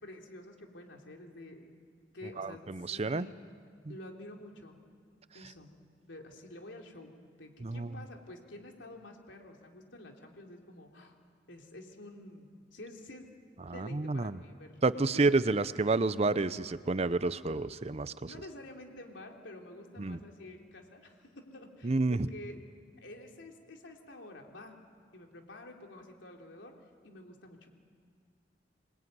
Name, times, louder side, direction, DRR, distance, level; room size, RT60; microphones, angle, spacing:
voice 1, 0.0-1.7 2.1-3.3 3.9-4.8 5.3-5.7 6.1-7.1 7.4-11.1 11.5-13.3 13.6-15.4 18.2-22.6 23.0-24.7 25.1-26.7 27.0-27.7, left 1 dB, 85° left, 2 dB, 3.4 m, -49 dB
voice 2, 2.4-3.3 7.6-7.9 13.7-14.4 14.8-18.1 20.0-20.2 21.8-22.3, right 3 dB, 35° right, 15 dB, 0.6 m, -29 dB
26.5 x 21.0 x 9.5 m, 2.1 s
head